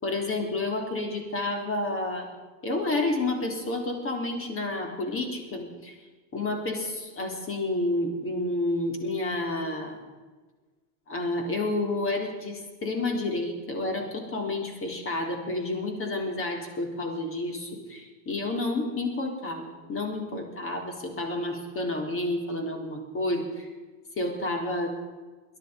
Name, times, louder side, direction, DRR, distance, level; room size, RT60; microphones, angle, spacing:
voice 1, 0.0-2.3 2.6-6.0 6.3-10.0 11.1-23.7 24.2-24.9, left 2 dB, 30° left, 3 dB, 3.6 m, -30 dB
21.0 x 11.0 x 5.2 m, 1.3 s
supercardioid pair, 115°, 43 cm